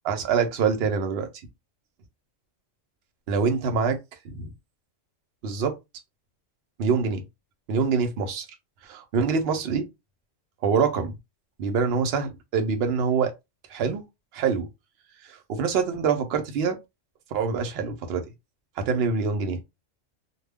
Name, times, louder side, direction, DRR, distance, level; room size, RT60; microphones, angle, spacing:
voice 1, 0.1-1.3 3.3-4.0 4.2-4.5 5.4-5.7 6.8-7.2 7.7-8.5 8.9-9.9 10.6-11.2 11.6-13.3 13.7-14.0 14.3-14.7 15.3-16.8 17.3-18.2 18.8-19.6, right 5 dB, 60° right, 0.8 m, -25 dB
2.2 x 2.2 x 3.4 m
omnidirectional pair, 1.3 m